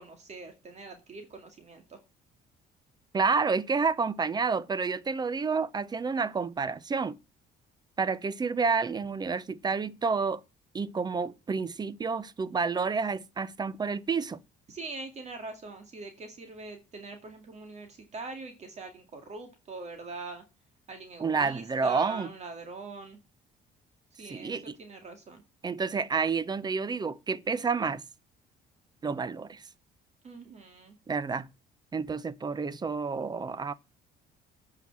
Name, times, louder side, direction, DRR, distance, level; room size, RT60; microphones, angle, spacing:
voice 1, 0.0-2.0 14.7-20.4 20.9-23.2 24.2-25.4 30.2-31.0, right 3 dB, 40° right, 2.2 m, -43 dB
voice 2, 3.1-7.1 8.0-10.4 10.7-14.4 21.2-22.3 24.3-24.6 25.6-28.0 29.0-29.6 31.1-31.5 31.9-33.7, right 5 dB, 25° right, 0.7 m, -29 dB
9.3 x 5.8 x 7.2 m
cardioid pair, 110°, 17 cm